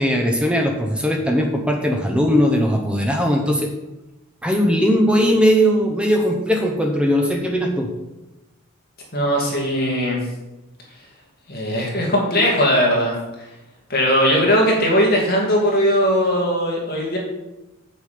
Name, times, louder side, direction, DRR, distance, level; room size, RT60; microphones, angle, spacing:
voice 1, 0.0-3.7 4.4-7.9, equal, 5° right, 2 dB, 0.7 m, -19 dB
voice 2, 9.1-10.2 11.5-13.2 13.9-17.2, equal, 45° left, -2 dB, 2.1 m, -19 dB
7.4 x 6.7 x 5.0 m, 1.0 s
head